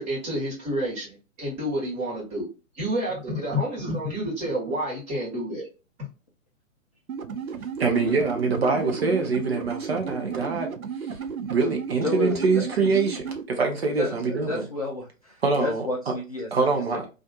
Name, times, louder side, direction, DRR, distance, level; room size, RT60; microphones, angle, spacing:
voice 1, 0.0-2.5 2.7-5.7 6.0-6.1, equal, 15° right, 1.2 m, -29 dB
sound 1, 7.1-13.4, right 6 dB, 85° right, 0.5 m, -34 dB
voice 2, 7.8-10.7 11.0-11.2 11.5-14.7 15.4-16.2 16.5-17.1, right 4 dB, 50° right, 0.7 m, -24 dB
voice 3, 12.0-12.6 13.8-16.5, left 2 dB, 30° left, 0.4 m, -31 dB
2.6 x 2.5 x 2.3 m
figure-of-eight pair, 125°, 41 cm